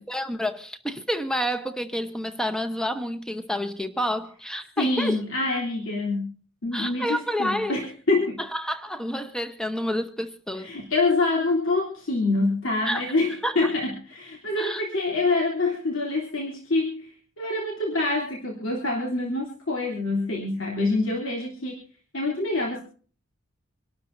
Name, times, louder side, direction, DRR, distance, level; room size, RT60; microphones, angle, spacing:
voice 1, 0.0-5.2 6.7-7.8 8.4-10.7 12.8-13.1 13.4-13.7 14.6-14.8, equal, 5° left, 0.9 m, -29 dB
voice 2, 4.8-6.3 6.6-8.4 10.5-17.1 17.4-21.8 22.1-22.8, left 2 dB, 60° left, 3.2 m, -26 dB
26.0 x 12.5 x 2.7 m
head